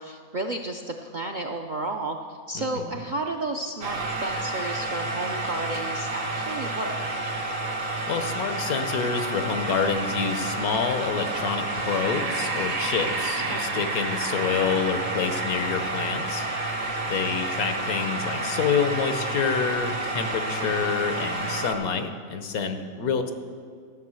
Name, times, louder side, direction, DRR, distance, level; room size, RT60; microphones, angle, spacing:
voice 1, 0.0-7.0 13.5-13.9 20.6-21.0, right 2 dB, 60° right, 3 dB, 0.5 m, -32 dB
voice 2, 2.5-3.0 8.1-16.5 17.1-23.3, left 6 dB, 85° left, 8 dB, 1.4 m, -27 dB
sound 1, 3.8-21.7, right 2 dB, 80° right, 1.6 m, -29 dB
13.5 x 6.4 x 7.6 m, 2.1 s
omnidirectional pair, 1.5 m